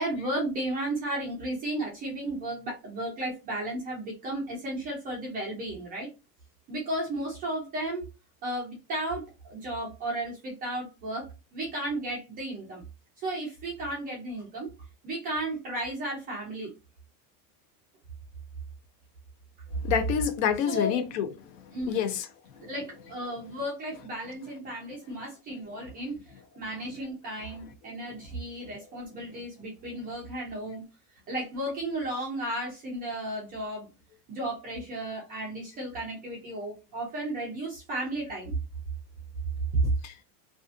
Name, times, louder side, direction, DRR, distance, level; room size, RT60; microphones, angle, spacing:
voice 1, 0.0-6.1 6.7-8.1 8.4-11.3 11.5-12.8 13.2-14.7 15.0-16.7 20.7-21.0 21.7-22.1 22.6-26.1 26.6-30.8 31.3-33.9 34.3-38.5 39.7-39.9, right 1 dB, 20° right, 0.3 m, -34 dB
voice 2, 19.8-21.3 21.9-22.3 40.0-40.1, left 8 dB, 55° left, 0.6 m, -27 dB
2.4 x 2.4 x 2.4 m
supercardioid pair, 155°, 48 cm